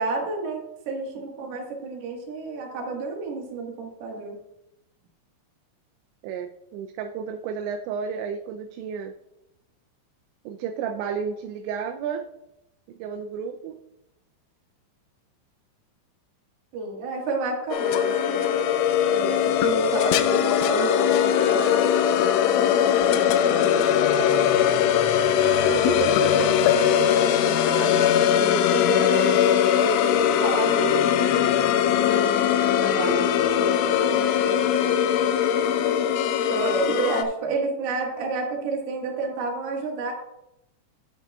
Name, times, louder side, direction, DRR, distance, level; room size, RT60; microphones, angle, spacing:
voice 1, 0.0-4.4 16.7-18.6 19.0-21.9 36.5-40.1, right 3 dB, 65° right, 0 dB, 3.3 m, -30 dB
voice 2, 6.2-9.1 10.5-12.3 13.0-13.8 23.4-25.0 25.6-26.6 27.0-29.4 29.7-31.4 32.6-33.3 33.6-35.0 36.3-37.2, right 7 dB, 85° right, 5 dB, 2.7 m, -32 dB
sound 1, 17.7-37.2, left 9 dB, 90° left, 3.1 m, -21 dB
10.5 x 9.0 x 2.3 m, 0.86 s
omnidirectional pair, 5.4 m